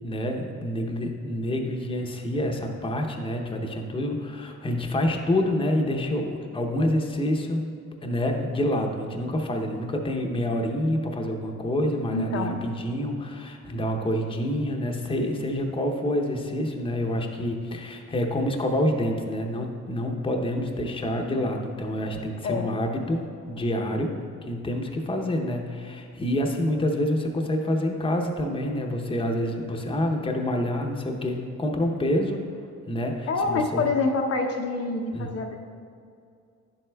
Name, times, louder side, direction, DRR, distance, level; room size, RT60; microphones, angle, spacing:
voice 1, 0.0-7.7 8.0-24.1 24.4-32.4 32.9-33.8 35.1-35.3, left 1 dB, 15° left, 2 dB, 0.8 m, -27 dB
voice 2, 12.1-12.6 22.4-22.7 33.3-35.6, left 3 dB, 50° left, 2 dB, 0.7 m, -26 dB
10.5 x 7.6 x 2.3 m, 2.4 s
cardioid pair, 90°, 30 cm